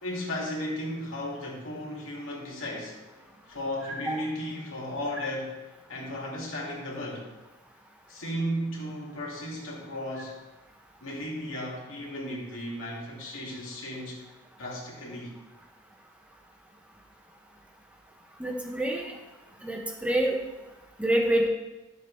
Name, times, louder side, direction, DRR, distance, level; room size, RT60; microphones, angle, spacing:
voice 1, 0.0-3.2 3.5-5.5 5.9-7.3 8.1-10.4 11.0-14.2 14.6-15.3, equal, 70° left, -3 dB, 2.5 m, -35 dB
voice 2, 3.8-4.2 18.4-19.1 19.6-20.3 21.0-21.5, right 1 dB, 5° right, 0 dB, 1.3 m, -27 dB
12.5 x 7.1 x 3.3 m, 1.1 s
head